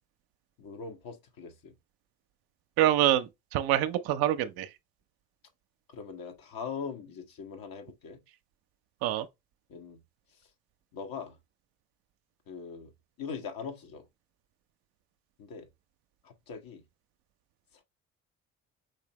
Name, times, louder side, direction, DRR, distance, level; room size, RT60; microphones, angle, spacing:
voice 1, 0.6-1.7 5.9-8.2 9.7-10.0 10.9-11.4 12.5-12.9 13.2-14.1 15.4-15.7 16.2-16.8, left 6 dB, 60° left, 1.4 m, -41 dB
voice 2, 2.8-4.7 9.0-9.3, right 12 dB, 65° right, 0.6 m, -26 dB
5.3 x 3.3 x 3.0 m
hypercardioid pair, 50°, 39 cm